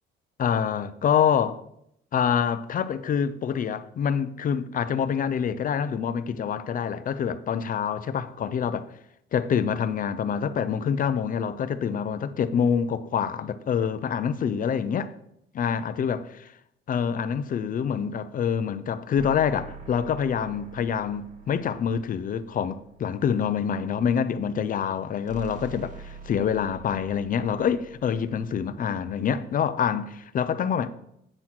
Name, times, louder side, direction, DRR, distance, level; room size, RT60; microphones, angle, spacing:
voice 1, 0.4-1.6 2.1-8.9 9.3-15.1 15.5-16.3 16.9-30.9, left 7 dB, 40° left, 0.5 m, -26 dB
sound 1, 19.2-23.7 25.3-30.0, right 3 dB, 40° right, 1.3 m, -46 dB
8.8 x 4.0 x 5.9 m
cardioid pair, 145°, 21 cm